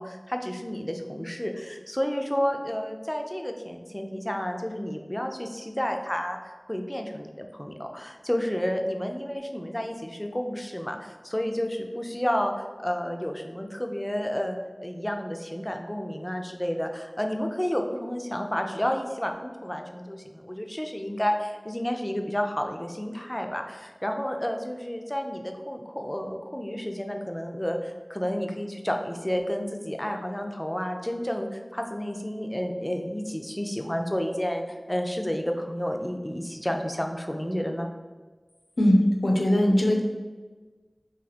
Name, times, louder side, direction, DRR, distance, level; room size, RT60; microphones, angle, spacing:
voice 1, 0.0-12.5 12.8-37.9, equal, 20° left, 4 dB, 0.4 m, -31 dB
voice 2, 38.8-40.0, equal, 85° left, 1 dB, 0.5 m, -20 dB
2.8 x 2.7 x 4.0 m, 1.3 s
wide cardioid pair, 45°, 0 cm